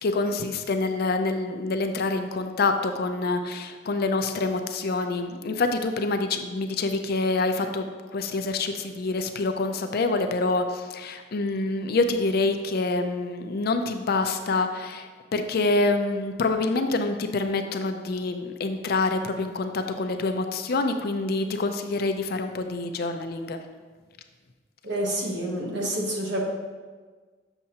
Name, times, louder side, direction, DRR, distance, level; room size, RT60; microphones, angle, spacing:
voice 1, 0.0-7.9 8.1-23.6, left 3 dB, 50° left, 7 dB, 0.4 m, -26 dB
voice 2, 24.8-26.5, right 1 dB, 60° right, -1 dB, 1.2 m, -28 dB
6.9 x 6.4 x 2.8 m, 1.4 s
head